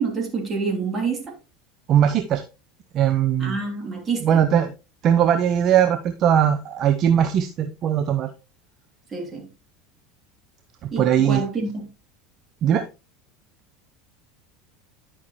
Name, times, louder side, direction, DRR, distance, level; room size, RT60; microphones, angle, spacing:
voice 1, 0.0-1.3 3.4-4.4 9.1-9.5 10.9-11.9, right 4 dB, 25° right, 3.1 m, -27 dB
voice 2, 1.9-2.4 2.9-3.6 4.2-4.7 5.0-8.3 10.8-11.4 12.6-12.8, right 9 dB, 45° right, 0.7 m, -19 dB
10.5 x 5.7 x 3.1 m
hypercardioid pair, 80°, 0 cm